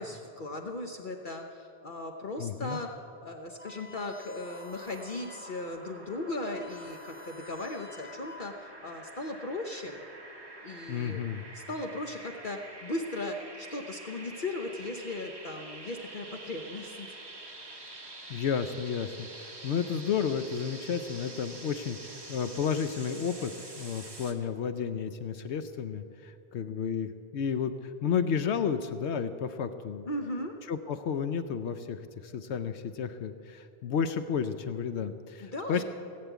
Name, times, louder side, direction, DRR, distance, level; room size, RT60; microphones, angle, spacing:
voice 1, 0.0-2.9 3.2-10.0 10.6-11.3 11.5-17.2 17.5-17.7 30.1-30.6 35.4-35.8, left 2 dB, 50° left, 3 dB, 1.0 m, -37 dB
voice 2, 2.4-2.8 10.9-11.4 18.3-30.1 30.7-35.8, left 7 dB, 80° left, 10 dB, 0.9 m, -32 dB
sound 1, 3.6-5.6 6.0-6.1 6.3-8.7, left 5 dB, 30° left, 1.4 m, -51 dB
sound 2, 4.4-24.3, right 2 dB, 20° right, 1.4 m, -47 dB
18.0 x 8.7 x 8.2 m, 2.6 s
omnidirectional pair, 1.1 m